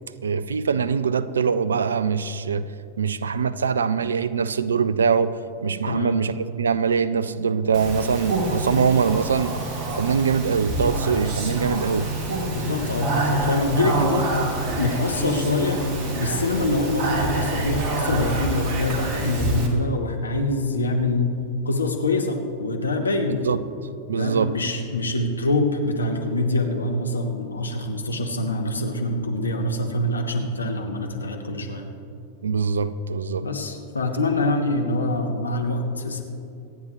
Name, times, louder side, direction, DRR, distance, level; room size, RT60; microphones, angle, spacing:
voice 1, 0.2-2.7 3.0-9.6 10.0-12.1 23.4-23.6 24.1-24.5 32.4-33.5, right 6 dB, 70° right, 16 dB, 0.4 m, -23 dB
voice 2, 5.9-6.2 12.5-15.8 16.1-21.3 21.6-23.5 24.2-31.9 33.4-36.2, left 2 dB, 75° left, 4 dB, 1.3 m, -25 dB
Speech, 7.7-19.7, right 2 dB, 40° right, 2.1 m, -27 dB
25.0 x 9.6 x 3.1 m, 2.6 s
figure-of-eight pair, 90°, 0 cm